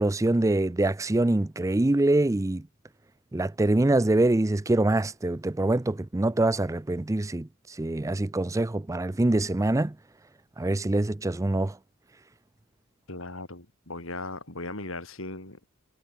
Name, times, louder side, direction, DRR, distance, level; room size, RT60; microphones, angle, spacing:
voice 1, 0.0-2.6 3.3-9.9 10.6-11.8, right 2 dB, 15° right, 0.5 m, -24 dB
voice 2, 13.1-15.7, left 2 dB, 65° left, 4.3 m, -38 dB
head